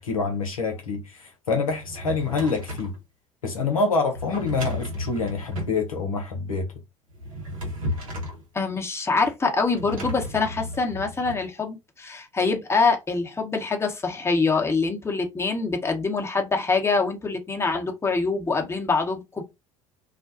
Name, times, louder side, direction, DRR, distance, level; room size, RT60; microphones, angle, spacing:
voice 1, 0.0-2.9 3.4-6.7, left 4 dB, 85° left, 0.7 m, -26 dB
Drawer open or close, 1.7-3.0 4.1-5.8 7.1-8.4 9.7-11.4, left 1 dB, 75° right, 0.9 m, -34 dB
voice 2, 8.5-19.4, left 4 dB, 15° left, 0.8 m, -25 dB
2.4 x 2.2 x 2.4 m
figure-of-eight pair, 65°, 18 cm